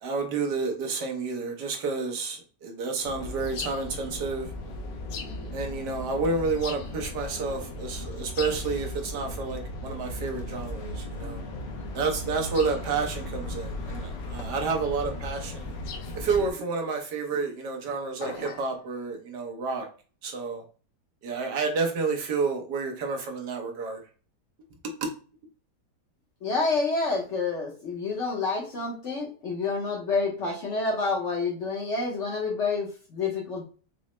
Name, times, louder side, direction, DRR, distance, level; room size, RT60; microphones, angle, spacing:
voice 1, 0.0-4.5 5.5-11.4 11.9-15.7 16.2-19.9 20.2-20.6 21.2-24.0 25.0-25.1, right 4 dB, 75° right, 2 dB, 1.4 m, -30 dB
sound 1, 3.0-16.5, left 2 dB, 90° left, 1.3 m, -36 dB
sound 2, 18.2-18.8, left 3 dB, 70° left, 1.3 m, -39 dB
voice 2, 26.4-33.7, left 4 dB, 55° left, 0 dB, 0.9 m, -28 dB
4.8 x 2.0 x 3.1 m, 0.37 s
omnidirectional pair, 1.8 m